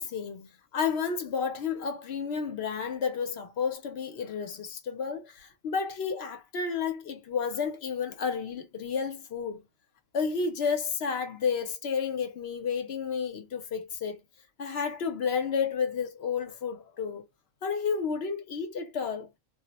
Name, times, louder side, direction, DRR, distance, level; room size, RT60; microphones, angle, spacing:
voice 1, 0.0-9.6 10.1-14.2 14.6-17.2 17.6-19.3, left 6 dB, 60° left, 0.8 m, -31 dB
2.3 x 2.0 x 3.8 m
omnidirectional pair, 1.3 m